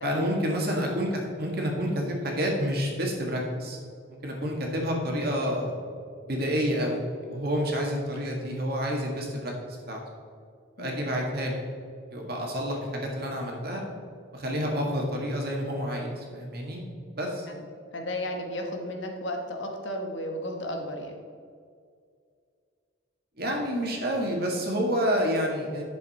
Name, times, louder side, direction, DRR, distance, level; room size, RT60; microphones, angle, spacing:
voice 1, 0.0-3.8 4.2-5.7 6.2-7.0 7.3-9.5 9.9-10.0 10.8-11.6 12.1-13.8 14.3-16.9 17.1-17.5 23.4-25.8, equal, 50° right, 0 dB, 1.8 m, -29 dB
voice 2, 17.9-21.1, left 1 dB, 65° left, 2 dB, 1.3 m, -34 dB
10.5 x 6.9 x 4.2 m, 2.2 s
head